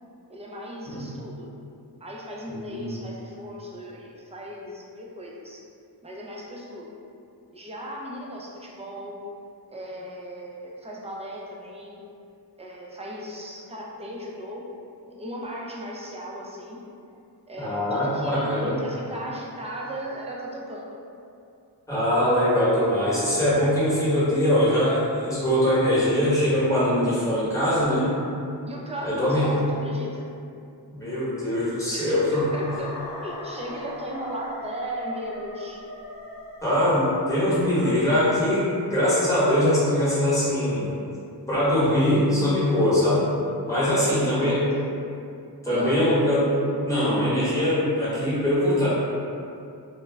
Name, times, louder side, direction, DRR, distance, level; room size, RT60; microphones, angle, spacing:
voice 1, 0.3-1.5 2.0-5.7 6.0-6.8 7.5-9.2 9.7-12.0 12.6-14.6 15.1-16.8 17.5-20.9 28.7-30.2 31.9-35.8 43.8-44.8 45.7-46.0, equal, 15° right, -3 dB, 0.4 m, -36 dB
voice 2, 2.5-2.9 17.6-18.7 21.9-28.1 29.0-29.5 30.9-32.5 36.6-40.9 41.5-43.3 43.6-44.6 45.6-46.5 46.8-48.9, left 1 dB, 10° left, -11 dB, 1.1 m, -22 dB
sound 1, 32.4-37.4, left 1 dB, 55° left, 0.6 m, -40 dB
2.2 x 2.0 x 3.2 m, 2.5 s
wide cardioid pair, 50°, 40 cm